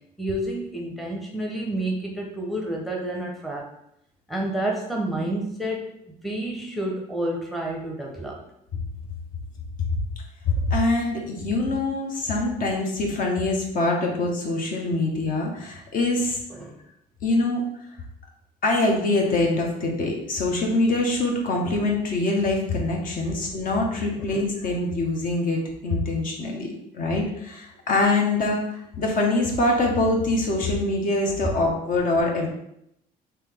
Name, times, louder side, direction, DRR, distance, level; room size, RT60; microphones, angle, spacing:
voice 1, 0.2-3.7 4.3-8.4 16.5-16.8 24.2-24.4, right 1 dB, ahead, -1 dB, 0.7 m, -29 dB
voice 2, 10.4-16.4 17.2-17.6 18.6-32.5, left 2 dB, 55° left, 0 dB, 1.0 m, -24 dB
4.0 x 2.9 x 3.5 m, 0.76 s
cardioid pair, 110°, 17 cm